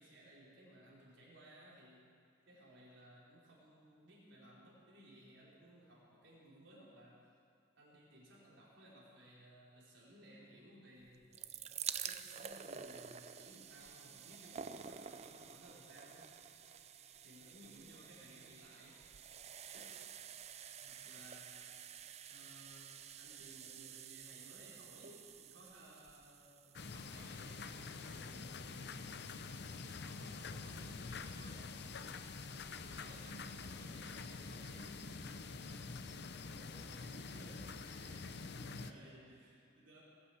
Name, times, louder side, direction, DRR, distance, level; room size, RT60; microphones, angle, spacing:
voice 1, 0.0-2.0 2.5-7.2 7.8-11.3 12.0-16.3 17.2-19.0 19.7-20.1 20.8-21.6 22.3-29.1 29.3-31.8 32.8-36.0 36.3-40.0, right 1 dB, 70° right, -6 dB, 4.8 m, -59 dB
sound 1, 11.1-28.1 28.9-29.0 29.2-29.3, right 8 dB, 35° right, 0.5 m, -50 dB
sound 2, 26.7-38.9, left 4 dB, 55° left, 0.7 m, -47 dB
20.0 x 8.5 x 8.1 m, 2.3 s
head